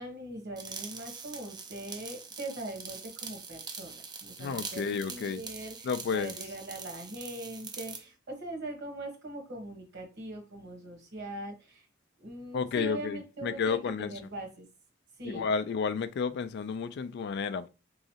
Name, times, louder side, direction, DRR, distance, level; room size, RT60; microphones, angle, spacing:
voice 1, 0.0-11.9 12.2-14.7 15.2-15.5, right 1 dB, 60° right, 1.2 m, -41 dB
sound 1, 0.6-8.1, right 5 dB, 20° right, 0.4 m, -43 dB
voice 2, 4.4-5.4 5.8-6.3 12.5-14.1 15.2-17.7, left 5 dB, 55° left, 0.3 m, -31 dB
3.6 x 3.1 x 2.8 m
head